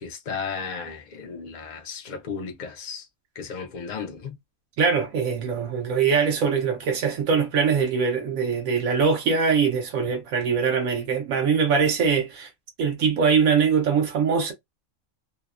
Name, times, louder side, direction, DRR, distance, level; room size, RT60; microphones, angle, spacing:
voice 1, 0.0-3.1 3.4-4.4, left 5 dB, 70° left, 0.4 m, -34 dB
voice 2, 4.8-12.5 12.8-14.5, right 6 dB, 80° right, 1.0 m, -22 dB
2.8 x 2.1 x 2.3 m
omnidirectional pair, 1.4 m